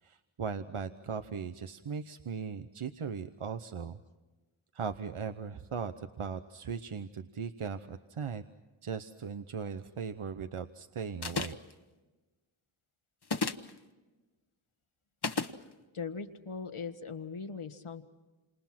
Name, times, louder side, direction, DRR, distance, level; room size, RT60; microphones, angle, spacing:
voice 1, 0.0-4.0 4.7-8.4 8.8-11.6, right 6 dB, 85° right, 9 dB, 1.0 m, -38 dB
sound 1, 11.2-11.7 13.2-13.7 15.2-15.5, left 4 dB, 50° left, 1.2 m, -32 dB
voice 2, 15.9-18.0, left 5 dB, 80° left, 8 dB, 1.6 m, -40 dB
28.5 x 27.5 x 6.0 m, 1.2 s
wide cardioid pair, 60°, 49 cm